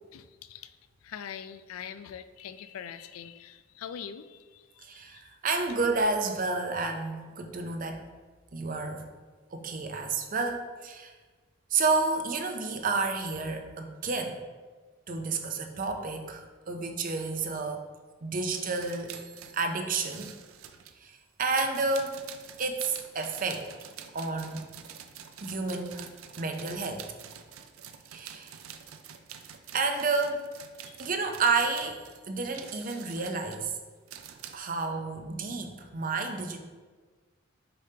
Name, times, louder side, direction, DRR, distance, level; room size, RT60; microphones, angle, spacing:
voice 1, 0.1-0.8 1.0-5.2 30.8-31.1, left 8 dB, 90° left, 12 dB, 0.3 m, -43 dB
voice 2, 4.8-8.0 8.5-9.1 9.5-11.1 11.7-14.4 15.1-17.9 18.2-19.2 19.5-20.3 21.0-22.2 22.6-23.7 24.1-24.8 25.4-26.1 26.4-27.1 28.1-28.6 29.7-30.5 31.0-32.0 32.3-33.7 34.5-36.6, right 3 dB, 40° right, 5 dB, 0.6 m, -30 dB
sound 1, 18.5-21.0 21.5-34.6, right 8 dB, 85° right, 0.5 m, -47 dB
6.7 x 5.1 x 2.8 m, 1.4 s
head